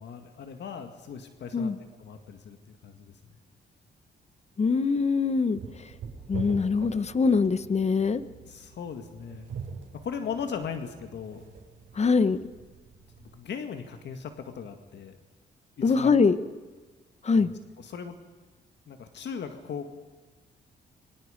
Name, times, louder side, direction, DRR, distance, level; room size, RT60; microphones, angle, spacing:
voice 1, 0.0-1.7 2.0-3.1 8.5-9.5 10.0-11.5 13.3-15.2 15.8-16.1 17.3-18.2 18.9-19.9, left 6 dB, 70° left, 6 dB, 2.0 m, -38 dB
voice 2, 4.6-5.6 6.3-8.2 11.9-12.4 15.8-16.4 17.2-17.5, left 4 dB, 35° left, 14 dB, 1.0 m, -23 dB
sound 1, 5.5-13.4, right 6 dB, 85° right, 5.3 m, -44 dB
26.5 x 24.0 x 5.2 m, 1.4 s
cardioid pair, 90°, 19 cm